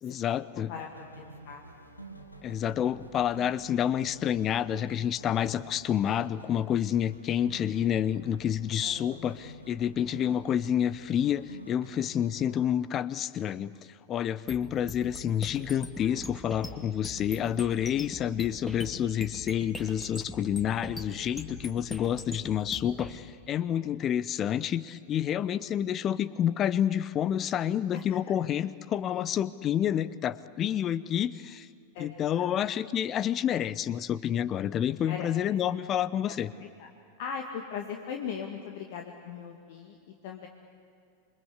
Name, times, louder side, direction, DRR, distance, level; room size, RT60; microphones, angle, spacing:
voice 1, 0.0-0.7 2.4-13.7 14.1-31.7 32.0-36.5, left 10 dB, 30° left, 19 dB, 0.8 m, -29 dB
sound 1, 0.7-12.6, right 2 dB, 85° left, 2.1 m, -48 dB
voice 2, 0.7-2.1 8.8-9.4 16.0-16.2 27.9-28.0 31.9-32.6 35.0-35.3 36.6-36.9 37.2-40.5, left 7 dB, 50° left, 3 dB, 2.0 m, -40 dB
sound 2, 14.5-23.1, left 2 dB, 10° left, 2.4 m, -42 dB
28.0 x 23.5 x 8.3 m, 2.5 s
figure-of-eight pair, 90°, 0 cm